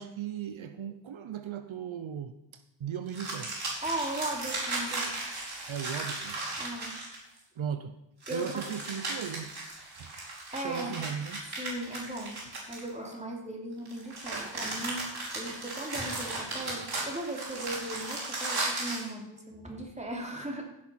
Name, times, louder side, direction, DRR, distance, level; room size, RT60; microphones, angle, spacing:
voice 1, 0.0-2.3 2.8-3.5 5.7-6.4 7.6-8.0 8.3-9.5 10.0-10.1 10.6-11.5, right 8 dB, 80° right, 10 dB, 0.8 m, -37 dB
sound 1, 3.1-7.4 8.2-13.1 13.9-19.1, right 2 dB, 55° right, 4.4 m, -36 dB
voice 2, 3.8-5.1 6.6-6.9 8.3-8.6 10.5-11.0 11.6-20.6, right 1 dB, 15° right, 0 dB, 2.9 m, -37 dB
15.0 x 6.2 x 5.7 m, 0.88 s
wide cardioid pair, 80°, 47 cm